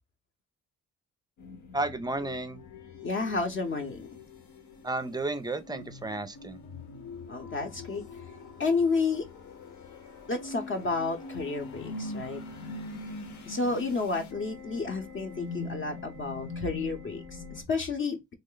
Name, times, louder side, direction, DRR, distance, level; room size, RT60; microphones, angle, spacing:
sound 1, 1.4-17.6, left 3 dB, 70° left, 1.0 m, -43 dB
voice 1, 1.7-2.6 4.8-6.6, right 2 dB, 15° right, 0.4 m, -32 dB
voice 2, 3.0-4.1 7.3-8.0 8.6-9.2 10.3-12.4 13.5-18.2, left 4 dB, 40° left, 0.8 m, -31 dB
3.2 x 2.0 x 3.8 m
cardioid pair, 90°, 30 cm